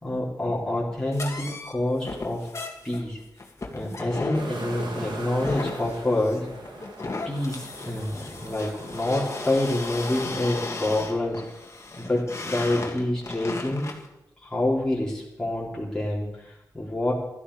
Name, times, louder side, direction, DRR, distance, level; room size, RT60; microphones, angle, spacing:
voice 1, 0.0-2.5 2.8-3.2 3.7-6.5 7.2-11.4 12.0-13.9 14.4-17.1, left 1 dB, 10° left, -6 dB, 4.3 m, -27 dB
sound 1, 1.1-14.1, left 3 dB, 40° left, 2.0 m, -36 dB
sound 2, 4.3-9.6, right 2 dB, 85° right, 2.5 m, -40 dB
15.5 x 13.0 x 5.1 m, 0.91 s
wide cardioid pair, 100°, 8 cm